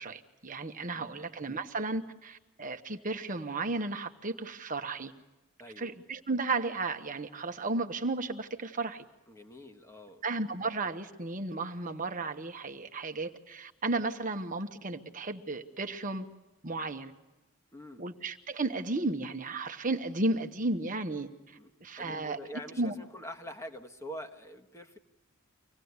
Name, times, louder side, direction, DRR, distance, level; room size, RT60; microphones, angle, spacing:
voice 1, 0.0-5.1 5.8-9.0 10.2-16.3 16.6-17.1 18.0-22.4 22.8-22.9, right 3 dB, 40° right, 6 dB, 1.1 m, -34 dB
voice 2, 0.9-1.3 5.6-5.9 9.3-10.2 17.7-18.0 21.5-21.7 22.0-25.0, equal, 15° left, 5 dB, 1.4 m, -45 dB
25.5 x 17.5 x 9.6 m, 1.1 s
head